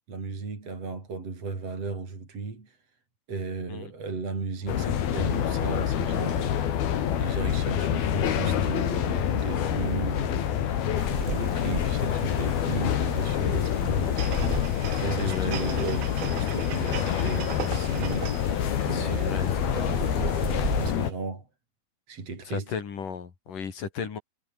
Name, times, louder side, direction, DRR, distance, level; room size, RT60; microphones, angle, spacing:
voice 1, 0.0-2.8 3.3-14.3 14.9-21.5 22.1-22.7, right 4 dB, 40° right, 6.1 m, -35 dB
sound 1, 4.7-21.1, left 9 dB, 80° left, 4.2 m, -27 dB
sound 2, 11.0-20.9, right 3 dB, 20° right, 3.4 m, -38 dB
sound 3, 14.2-18.6 19.0-19.1, right 13 dB, 80° right, 3.3 m, -39 dB
voice 2, 15.1-15.6 18.9-20.0 22.4-24.2, left 6 dB, 60° left, 4.7 m, -35 dB
omnidirectional pair, 4.3 m